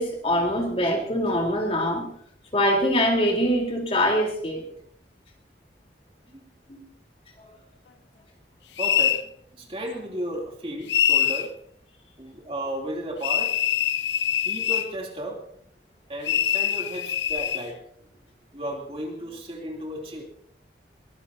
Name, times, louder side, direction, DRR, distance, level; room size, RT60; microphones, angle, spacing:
voice 1, 0.0-2.1 2.5-4.7 6.7-6.8, equal, 35° left, 1 dB, 3.8 m, -23 dB
sound 1, 8.8-9.2 10.9-11.5 13.2-14.9 16.2-17.6, left 9 dB, 85° left, 0.7 m, -24 dB
voice 2, 8.8-11.5 12.2-13.6 14.4-15.4 16.1-17.8 18.5-20.2, right 1 dB, 30° right, 0 dB, 3.0 m, -34 dB
22.5 x 20.5 x 2.8 m, 0.67 s
head